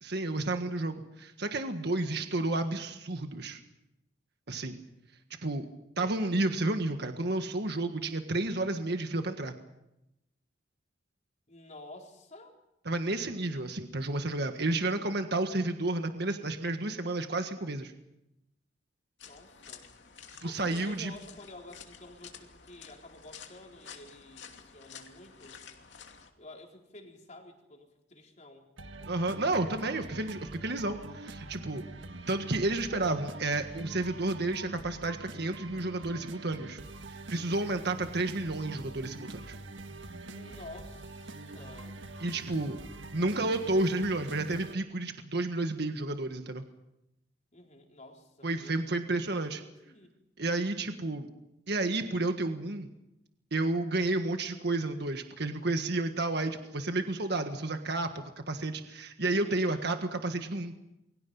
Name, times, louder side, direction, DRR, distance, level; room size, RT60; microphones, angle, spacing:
voice 1, 0.0-3.6 4.5-4.8 5.4-5.7 6.0-9.5 12.8-17.9 20.4-21.1 29.1-31.8 32.3-36.8 37.1-39.6 42.2-42.8 43.1-46.6 48.4-49.6 50.4-51.3 51.7-52.9 53.5-60.7, right 2 dB, 60° right, 6 dB, 1.6 m, -31 dB
voice 2, 1.8-2.2 6.0-6.1 11.5-12.5 19.2-19.9 20.4-25.6 26.4-29.2 40.2-42.0 47.5-50.1 59.4-59.9, left 1 dB, 40° left, 1 dB, 4.3 m, -51 dB
sound 1, 19.2-26.3, left 7 dB, 70° left, 2.7 m, -51 dB
sound 2, 28.8-44.7, right 2 dB, 85° right, 1.6 m, -45 dB
29.0 x 23.0 x 5.6 m, 0.87 s
head